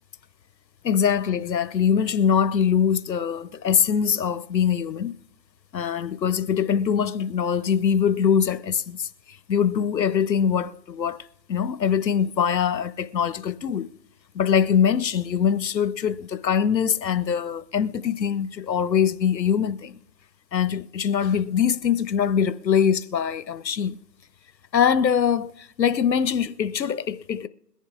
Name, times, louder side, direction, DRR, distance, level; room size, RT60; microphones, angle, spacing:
voice 1, 0.8-5.1 5.7-11.2 11.5-13.9 14.3-20.0 20.5-24.0 24.7-27.5, left 7 dB, 85° left, 0.8 m, -23 dB
22.0 x 7.4 x 2.3 m
hypercardioid pair, 170°, 50 cm